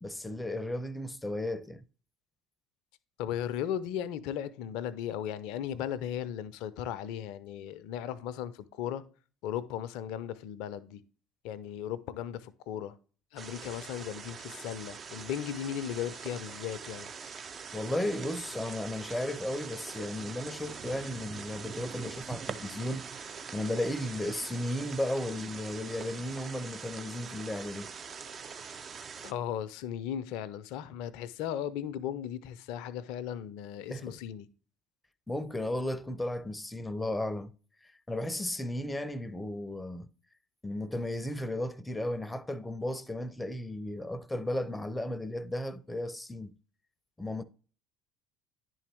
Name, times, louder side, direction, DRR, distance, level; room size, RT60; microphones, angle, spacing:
voice 1, 0.0-1.8 17.7-27.9 33.9-34.2 35.3-37.5 38.1-40.1 40.6-46.5 47.2-47.4, left 1 dB, 10° left, 0.6 m, -34 dB
voice 2, 3.2-9.0 9.4-11.0 11.4-13.0 13.3-17.1 29.2-34.5, left 10 dB, 60° left, 0.5 m, -36 dB
sound 1, 13.4-29.3, right 6 dB, 35° right, 0.5 m, -43 dB
10.0 x 3.8 x 3.4 m
figure-of-eight pair, 60°, 0 cm